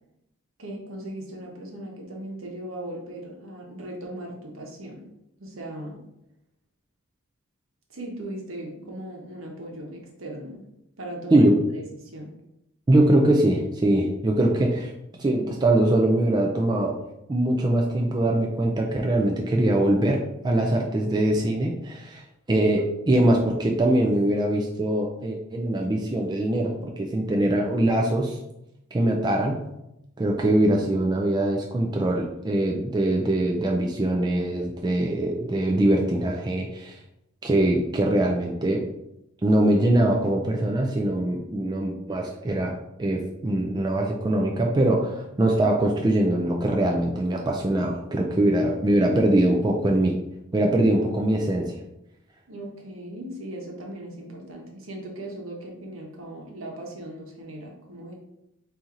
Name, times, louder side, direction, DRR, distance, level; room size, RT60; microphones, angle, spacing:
voice 1, 0.6-5.1 5.4-6.0 7.9-10.6 11.0-12.3 52.5-58.1, right 1 dB, 70° right, 0 dB, 1.1 m, -38 dB
voice 2, 12.9-14.9 15.2-17.0 17.3-22.2 22.5-28.4 28.9-29.6 30.2-37.0 37.4-38.8 39.4-50.1 50.5-51.7, right 1 dB, 20° right, 0 dB, 0.4 m, -22 dB
4.3 x 2.7 x 3.7 m, 0.85 s
head